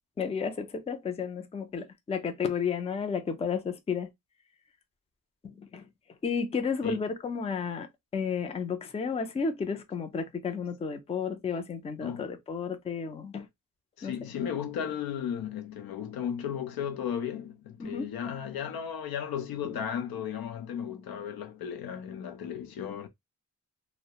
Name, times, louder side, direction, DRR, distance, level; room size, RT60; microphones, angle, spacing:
voice 1, 0.2-4.1 5.4-5.8 6.2-7.9 8.1-13.5 14.0-14.2 17.8-18.1 19.6-19.8, left 6 dB, 20° left, 0.3 m, -32 dB
voice 2, 14.0-23.1, left 8 dB, 90° left, 0.6 m, -35 dB
2.3 x 2.1 x 2.8 m
wide cardioid pair, 125°, 35 cm